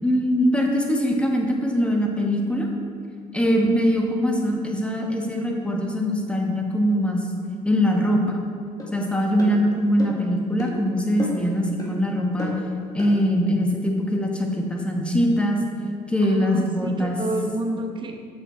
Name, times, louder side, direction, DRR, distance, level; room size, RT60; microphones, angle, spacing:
voice 1, 0.0-2.7 3.3-7.2 7.6-8.4 8.9-12.5 12.9-15.6 16.1-17.2, equal, 5° left, 0 dB, 1.2 m, -22 dB
sound 1, 8.8-8.9 9.4-9.5 10.0-10.2 10.6-10.7 11.2-11.5 11.8-11.9 12.4-12.6 13.0-13.1, left 2 dB, 25° left, 1.8 m, -32 dB
voice 2, 16.2-18.2, right 2 dB, 30° right, 4 dB, 0.9 m, -30 dB
6.5 x 6.3 x 4.3 m, 2.2 s
supercardioid pair, 85°, 15 cm